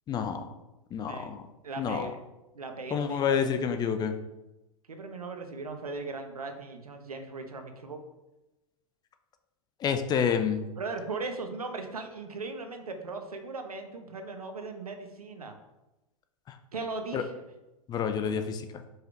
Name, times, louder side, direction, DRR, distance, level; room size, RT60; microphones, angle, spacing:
voice 1, 0.1-0.5 0.9-1.5 1.8-2.1 2.9-4.1 9.8-10.7 16.5-16.6 17.1-17.2 17.9-18.7, left 7 dB, 20° left, 8 dB, 0.6 m, -28 dB
voice 2, 1.0-1.4 1.6-2.2 2.5-3.4 4.9-8.0 10.8-15.6 16.7-17.3, right 3 dB, 85° right, 6 dB, 1.0 m, -38 dB
5.0 x 4.9 x 4.6 m, 0.98 s
hypercardioid pair, 105°, 19 cm